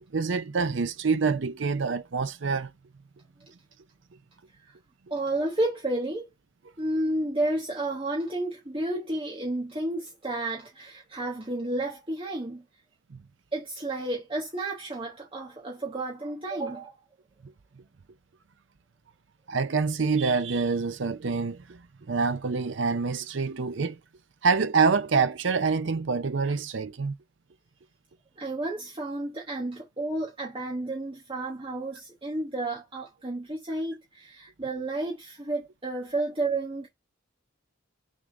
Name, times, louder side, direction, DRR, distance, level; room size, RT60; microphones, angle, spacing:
voice 1, 0.1-2.7 13.1-13.2 19.5-24.0 24.4-27.1, right 4 dB, 65° right, 0.6 m, -26 dB
voice 2, 5.1-6.3 6.8-12.6 13.5-16.9 28.4-36.9, right 2 dB, 25° right, 1.3 m, -31 dB
6.1 x 3.6 x 5.2 m
head